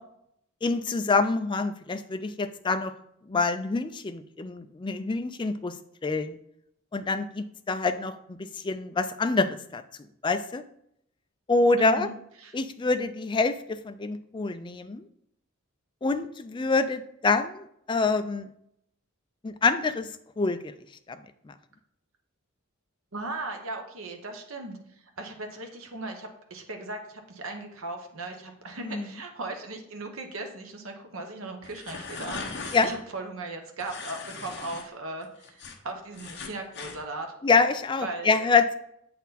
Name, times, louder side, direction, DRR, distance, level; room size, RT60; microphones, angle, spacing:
voice 1, 0.6-2.9 3.3-5.8 6.0-6.4 6.9-9.8 10.2-10.6 11.5-12.1 12.5-15.0 16.0-18.5 19.4-20.1 20.4-20.6 21.1-21.2 28.8-29.1 32.7-32.9 37.4-38.7, left 3 dB, 20° left, 10 dB, 0.3 m, -26 dB
voice 2, 11.8-12.1 12.4-12.5 23.1-24.8 25.2-37.3 38.0-38.5, right 2 dB, 70° right, 3 dB, 1.0 m, -37 dB
sound 1, 31.6-33.0 33.8-34.8 35.2-37.0, left 4 dB, 50° left, 0.9 m, -39 dB
8.1 x 4.3 x 4.0 m, 0.75 s
head